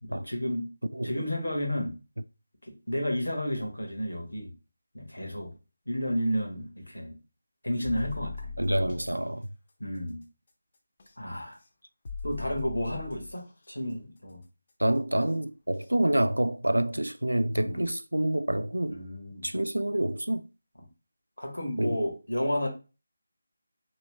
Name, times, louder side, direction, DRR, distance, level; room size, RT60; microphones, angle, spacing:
voice 1, 0.0-0.7 1.0-1.9 2.6-4.5 4.9-5.5 5.9-7.2 7.6-8.5 9.8-10.2 11.2-11.6 12.2-14.4 17.5-17.8 18.9-19.5 21.4-22.7, equal, 85° left, 1.2 m, -32 dB
sound 1, 7.8-9.1 11.0-11.1 12.0-13.4 15.2-15.3 15.8-15.9, left 4 dB, 40° left, 0.6 m, -39 dB
voice 2, 8.6-9.5 14.8-19.0 19.4-20.5 21.8-22.0, right 1 dB, 90° right, 0.3 m, -27 dB
3.1 x 2.9 x 3.1 m
figure-of-eight pair, 160°, 0 cm